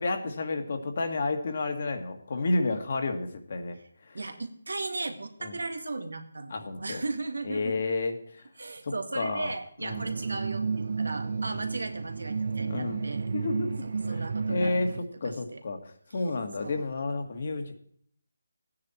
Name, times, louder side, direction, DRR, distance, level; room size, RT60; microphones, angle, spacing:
voice 1, 0.0-3.8 4.0-4.2 5.4-5.6 6.5-7.0 7.4-8.4 8.8-9.5 9.8-10.1 12.7-13.0 13.3-13.7 14.1-14.2 14.5-14.9 15.2-17.7, left 3 dB, 50° left, 6 dB, 1.9 m, -31 dB
voice 2, 4.1-7.8 8.6-13.3 13.8-15.0 15.2-15.6 16.6-16.9, right 3 dB, 85° right, 7 dB, 1.9 m, -36 dB
sound 1, 9.9-15.0, right 5 dB, 60° right, 0.9 m, -32 dB
14.5 x 9.6 x 4.4 m, 0.64 s
figure-of-eight pair, 165°, 0 cm